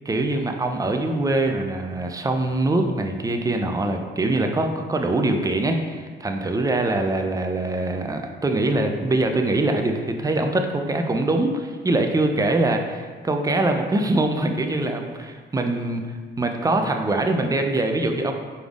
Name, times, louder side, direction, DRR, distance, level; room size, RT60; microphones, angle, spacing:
voice 1, 0.1-18.3, right 2 dB, 15° right, 4 dB, 0.4 m, -23 dB
5.3 x 3.4 x 2.4 m, 1.5 s
cardioid pair, 90°, 20 cm